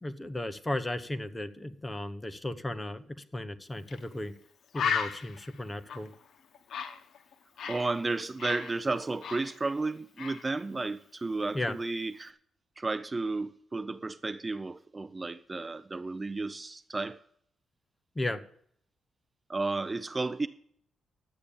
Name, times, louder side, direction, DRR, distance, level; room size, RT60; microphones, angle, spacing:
voice 1, 0.0-4.3 4.7-6.1 11.5-11.8 18.1-18.4, left 1 dB, 15° left, 1.0 m, -35 dB
Bird, 3.9-4.0 4.4-4.5 4.7-7.9 8.2-9.9 10.2-10.5, left 7 dB, 70° left, 1.1 m, -35 dB
voice 2, 7.7-12.4 12.8-17.2 19.5-20.5, right 3 dB, 25° right, 0.5 m, -33 dB
12.0 x 8.7 x 7.0 m
cardioid pair, 100°, 0 cm